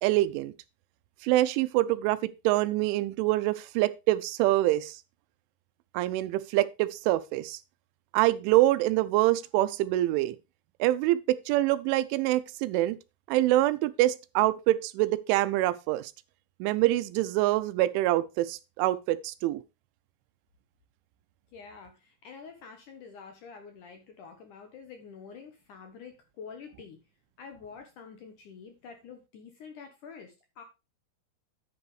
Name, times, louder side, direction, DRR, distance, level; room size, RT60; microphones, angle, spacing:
voice 1, 0.0-0.5 1.2-2.2 2.4-5.0 5.9-7.6 8.1-10.4 10.8-13.0 13.3-16.1 16.6-19.6, right 16 dB, 85° right, 3.1 m, -25 dB
voice 2, 21.5-27.0 27.4-30.6, left 5 dB, 80° left, 1.8 m, -47 dB
10.5 x 9.7 x 3.2 m
omnidirectional pair, 5.4 m